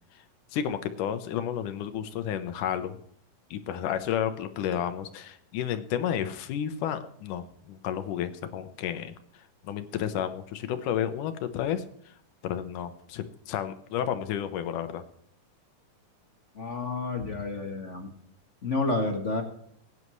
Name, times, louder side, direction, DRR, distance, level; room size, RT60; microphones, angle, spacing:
voice 1, 0.5-3.0 3.5-9.1 9.6-11.8 12.4-15.0 17.2-17.4, left 9 dB, 75° left, 10 dB, 2.5 m, -31 dB
voice 2, 16.5-18.1 18.6-19.4, left 3 dB, 40° left, 3 dB, 1.1 m, -30 dB
21.0 x 9.8 x 3.2 m, 0.67 s
omnidirectional pair, 3.7 m